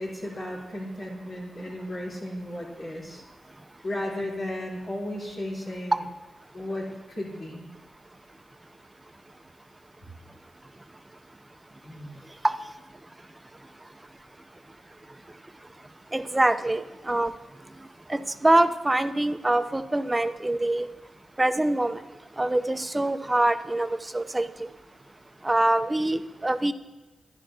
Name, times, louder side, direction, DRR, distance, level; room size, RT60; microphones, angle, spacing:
voice 1, 0.0-3.2 3.8-6.0 6.5-7.6 11.8-12.2, left 1 dB, 70° left, -9 dB, 3.5 m, -34 dB
voice 2, 16.1-17.3 18.1-20.9 21.4-22.0 22.4-24.7 25.4-26.7, right 1 dB, 25° right, 11 dB, 0.5 m, -24 dB
10.5 x 10.5 x 2.8 m, 1.1 s
supercardioid pair, 45°, 0 cm